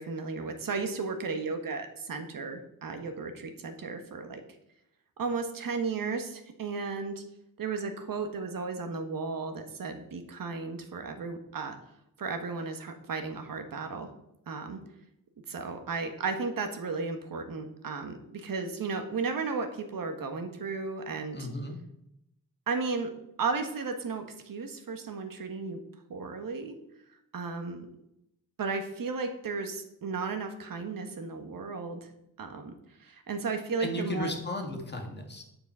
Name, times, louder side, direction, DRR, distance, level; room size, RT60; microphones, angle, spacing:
voice 1, 0.0-4.4 5.2-7.2 7.6-11.8 12.2-14.1 14.5-14.8 15.5-21.5 22.7-23.1 23.4-25.8 26.1-26.8 27.3-27.9 28.6-32.1 32.4-32.7 33.0-34.3, right 4 dB, 65° right, 6 dB, 1.4 m, -34 dB
voice 2, 21.3-21.8 33.8-35.4, left 1 dB, 30° left, 3 dB, 1.7 m, -35 dB
10.0 x 7.2 x 5.5 m, 0.81 s
wide cardioid pair, 175°, 36 cm